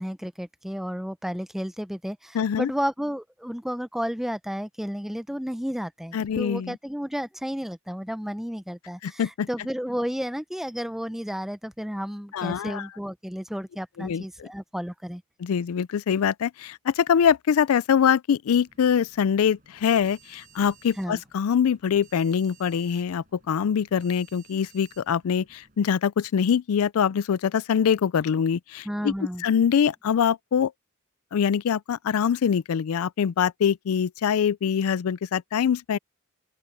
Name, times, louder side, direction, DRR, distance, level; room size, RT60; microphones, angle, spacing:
voice 1, 0.0-15.2 21.0-21.2 28.8-29.4, equal, ahead, 0.5 m, -32 dB
voice 2, 2.3-2.7 6.1-6.8 9.0-9.5 12.3-12.9 14.0-14.5 15.4-29.1 29.4-30.7 31.3-36.0, left 7 dB, 80° left, 0.4 m, -24 dB
sound 1, 18.5-25.9, right 5 dB, 40° right, 7.6 m, -57 dB
open air
head